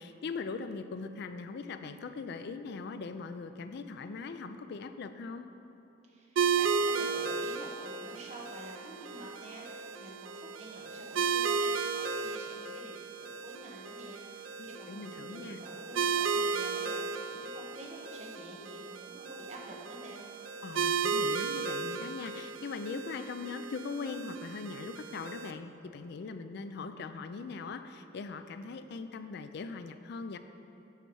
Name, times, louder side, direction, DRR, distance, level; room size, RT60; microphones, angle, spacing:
voice 1, 0.0-5.5 14.6-15.6 20.6-30.4, left 4 dB, 60° left, 10 dB, 0.4 m, -40 dB
voice 2, 6.1-20.2, right 1 dB, 35° right, -2 dB, 1.1 m, -49 dB
sound 1, 6.4-25.5, right 5 dB, 85° right, 0.4 m, -34 dB
8.0 x 5.5 x 4.6 m, 2.9 s
head